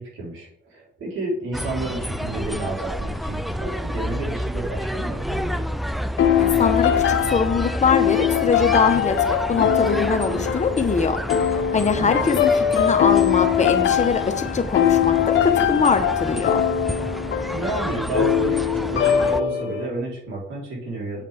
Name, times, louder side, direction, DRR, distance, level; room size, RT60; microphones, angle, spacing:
voice 1, 0.0-5.6 11.9-12.3 17.5-21.2, right 2 dB, 80° right, -3 dB, 3.9 m, -30 dB
sound 1, 1.5-19.4, equal, ahead, 0.4 m, -29 dB
sound 2, 6.2-19.9, left 9 dB, 75° left, 0.8 m, -22 dB
voice 2, 6.4-11.2 11.7-16.6, left 5 dB, 35° left, 8 dB, 1.0 m, -22 dB
7.8 x 7.5 x 3.5 m, 0.66 s
cardioid pair, 90°, 20 cm